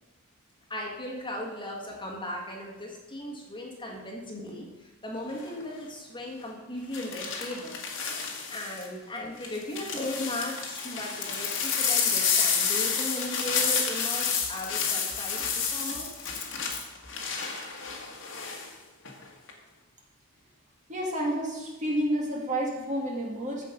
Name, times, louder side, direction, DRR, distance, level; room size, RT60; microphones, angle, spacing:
voice 1, 0.7-7.8 8.5-16.1, left 1 dB, 20° left, -1 dB, 1.7 m, -37 dB
sound 1, 5.3-5.6 6.9-8.9 9.4-18.7 19.0-19.5, left 6 dB, 60° left, 1.7 m, -30 dB
voice 2, 20.9-23.6, right 1 dB, 35° right, -2 dB, 2.1 m, -30 dB
14.0 x 5.2 x 5.2 m, 1.2 s
head